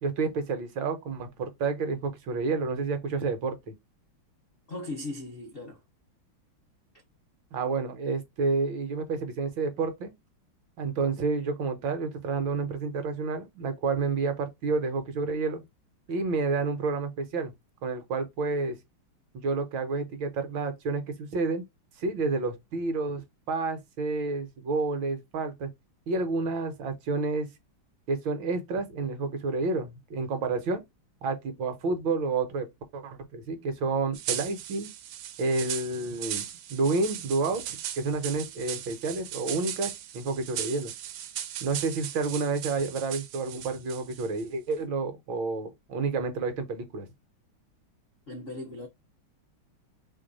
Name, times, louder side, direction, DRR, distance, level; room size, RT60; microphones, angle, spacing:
voice 1, 0.0-3.7 7.5-10.1 10.8-15.6 16.1-17.5 17.8-18.8 19.3-21.6 22.0-25.7 26.1-27.5 28.1-30.8 31.2-32.7 32.9-34.9 35.4-40.9 41.6-47.1, right 3 dB, 70° right, 1.5 m, -30 dB
voice 2, 4.7-5.8 48.3-48.9, left 2 dB, 60° left, 0.5 m, -38 dB
sound 1, 34.1-44.4, right 11 dB, 90° right, 1.5 m, -37 dB
3.5 x 3.0 x 3.9 m
omnidirectional pair, 2.3 m